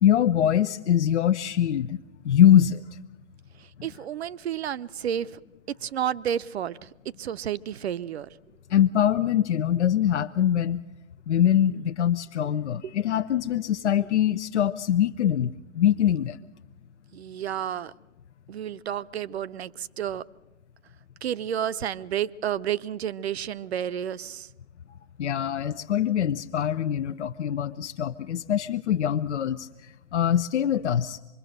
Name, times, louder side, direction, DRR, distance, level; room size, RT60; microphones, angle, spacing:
voice 1, 0.0-2.0 2.2-2.8 8.7-10.8 11.3-16.4 25.2-31.2, left 10 dB, 65° left, 7 dB, 0.8 m, -23 dB
voice 2, 3.6-5.4 5.8-8.3 12.8-12.9 17.1-17.9 18.5-20.2 21.2-24.5, right 10 dB, 60° right, 18 dB, 0.8 m, -31 dB
25.0 x 22.0 x 6.6 m, 1.1 s
hypercardioid pair, 140°, 37 cm